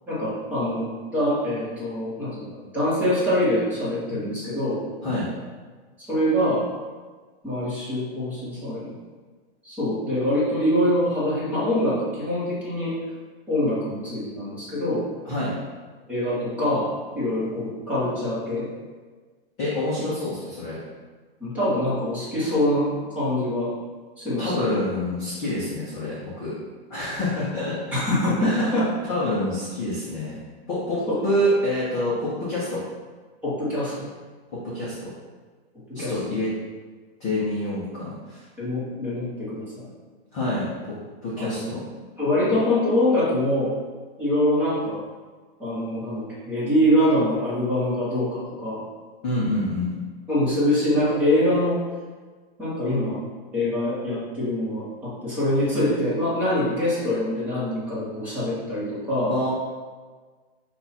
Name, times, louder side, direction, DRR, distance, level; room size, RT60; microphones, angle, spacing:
voice 1, 0.1-4.8 6.0-6.7 7.4-8.9 9.6-13.0 13.5-15.0 16.1-18.7 21.4-23.7 24.2-24.8 27.9-28.9 33.4-34.0 36.0-36.1 38.6-39.9 41.4-41.7 42.2-43.7 44.2-45.0 45.6-48.8 50.3-51.8 52.6-53.2 53.5-59.3, left 1 dB, 5° right, -10 dB, 1.0 m, -24 dB
voice 2, 5.0-5.3 15.2-15.5 19.6-20.8 24.4-26.6 26.9-27.9 28.4-30.4 30.7-32.8 34.5-35.1 35.9-36.5 37.2-38.4 40.3-40.9 41.2-41.8 49.2-49.9 59.3-59.5, left 1 dB, 15° left, -9 dB, 0.5 m, -27 dB
5.5 x 2.4 x 4.0 m, 1.4 s
hypercardioid pair, 170°, 31 cm